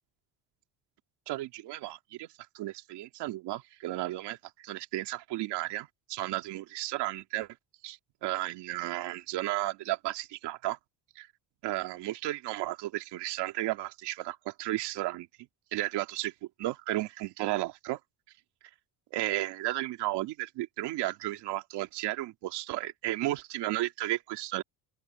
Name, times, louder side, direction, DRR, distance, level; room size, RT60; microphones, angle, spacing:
voice 1, 1.3-2.3 2.5-7.5 7.8-10.8 11.2-11.3 11.6-15.3 15.7-16.3 16.6-18.0 19.1-24.6, right 16 dB, 75° right, 2.5 m, -33 dB
open air
cardioid pair, 165°, 41 cm